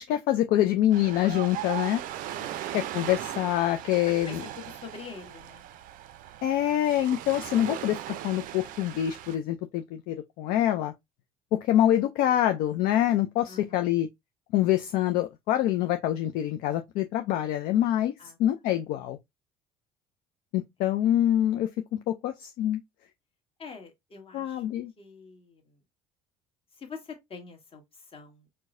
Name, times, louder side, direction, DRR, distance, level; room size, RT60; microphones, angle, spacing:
voice 1, 0.0-2.0 2.7-4.4 6.4-10.9 11.5-14.1 14.5-18.1 18.4-19.2 20.5-22.8 24.3-24.9, left 12 dB, 60° left, 0.4 m, -25 dB
Ocean, 0.9-9.4, right 12 dB, 55° right, 0.4 m, -38 dB
voice 2, 2.3-2.7 4.2-5.6 13.4-14.0 18.2-18.4 23.6-24.6 25.0-25.8 26.7-28.5, left 5 dB, 35° left, 1.4 m, -45 dB
4.5 x 2.1 x 2.5 m
hypercardioid pair, 60°, 17 cm